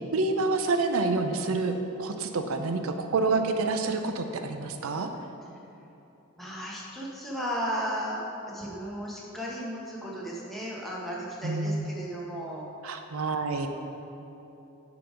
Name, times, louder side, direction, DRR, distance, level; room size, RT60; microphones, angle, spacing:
voice 1, 0.0-1.7 2.0-5.1 11.4-11.9 12.8-13.7, right 3 dB, 90° right, 6 dB, 0.5 m, -28 dB
voice 2, 6.4-12.7, equal, ahead, -6 dB, 1.1 m, -35 dB
10.0 x 4.0 x 5.0 m, 2.9 s
head